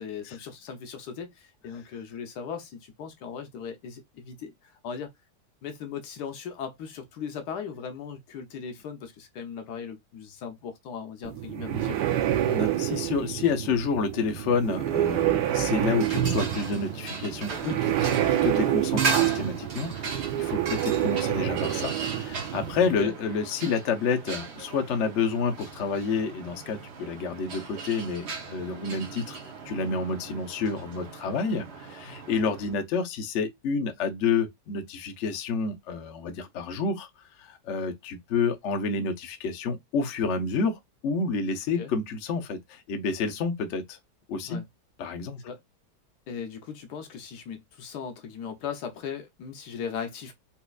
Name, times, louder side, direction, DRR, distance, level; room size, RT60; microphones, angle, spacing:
voice 1, 0.0-5.1 5.6-12.0 23.0-23.1 41.8-41.9 44.4-44.6 45.4-45.6 46.3-50.3, left 7 dB, 80° left, 1.3 m, -38 dB
sound 1, 11.2-23.0, right 12 dB, 80° right, 1.2 m, -27 dB
voice 2, 12.4-29.4 29.6-37.1 37.4-44.0 44.3-44.6 45.0-45.4, left 5 dB, 60° left, 0.8 m, -29 dB
sound 2, 15.3-32.8, right 4 dB, 50° right, 0.9 m, -37 dB
4.2 x 2.5 x 2.3 m
omnidirectional pair, 1.8 m